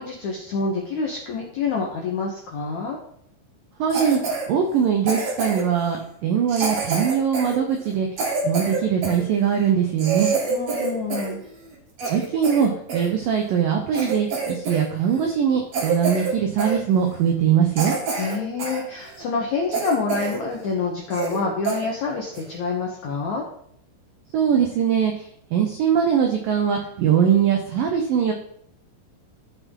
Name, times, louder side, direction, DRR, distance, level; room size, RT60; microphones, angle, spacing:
voice 1, 0.0-3.0 10.5-11.4 18.2-23.4, left 4 dB, 80° left, -1 dB, 1.7 m, -27 dB
voice 2, 3.8-4.2 4.5-8.1 8.4-10.3 12.1-18.0 24.3-25.2 25.5-28.3, right 8 dB, 85° right, 3 dB, 1.9 m, -21 dB
Cough, 3.9-4.5 5.1-5.8 6.5-9.2 9.7-9.8 10.0-11.3 11.7-13.1 13.6-13.7 13.9-14.9 15.1-15.3 15.7-16.3 16.6-16.8 17.3-17.4 17.8-18.8 19.2-19.3 19.7-20.4 20.7-20.8 21.1-21.4 21.6-21.8 22.3-22.6, right 4 dB, 50° right, 2.3 m, -27 dB
14.5 x 5.6 x 3.7 m, 0.67 s
omnidirectional pair, 5.3 m